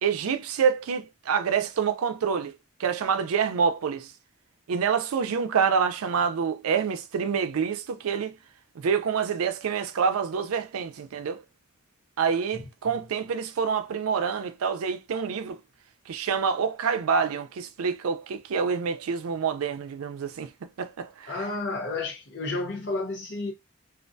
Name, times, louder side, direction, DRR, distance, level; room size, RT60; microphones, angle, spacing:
voice 1, 0.0-2.5 2.8-4.1 4.7-8.3 8.8-11.4 12.2-15.6 16.1-20.5 20.8-21.3, right 6 dB, 90° right, 0.4 m, -27 dB
voice 2, 21.3-23.5, left 3 dB, 55° left, 0.9 m, -31 dB
2.4 x 2.2 x 2.5 m
head